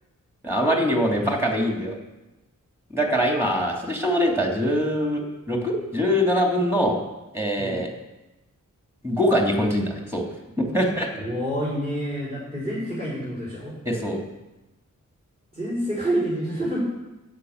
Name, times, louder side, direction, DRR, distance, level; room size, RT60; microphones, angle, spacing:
voice 1, 0.4-1.9 2.9-7.0 7.3-7.9 9.0-10.2 10.6-11.1 13.8-14.2, equal, 10° right, 0 dB, 3.0 m, -23 dB
voice 2, 11.1-13.7 15.5-16.8, right 1 dB, 30° right, -6 dB, 5.4 m, -28 dB
11.5 x 8.9 x 8.1 m, 1.0 s
wide cardioid pair, 105°, 32 cm